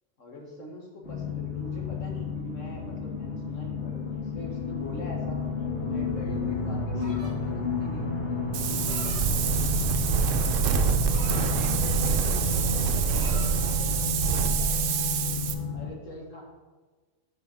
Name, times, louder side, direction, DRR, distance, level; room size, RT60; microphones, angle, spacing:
voice 1, 0.2-5.4 5.8-8.1 8.5-9.4 15.7-16.4, left 1 dB, 85° left, -1 dB, 1.9 m, -43 dB
sound 1, 1.0-15.9, left 4 dB, 65° left, 1.9 m, -31 dB
sound 2, 6.9-7.5 8.5-9.2 10.1-11.5 11.9-12.2 12.5-13.5, right 1 dB, 35° right, 1.7 m, -46 dB
Wind, 8.5-15.5, right 6 dB, 85° right, 1.0 m, -26 dB
voice 2, 11.0-15.1, equal, 35° left, -13 dB, 2.7 m, -46 dB
5.5 x 5.0 x 5.7 m, 1.3 s
omnidirectional pair, 1.3 m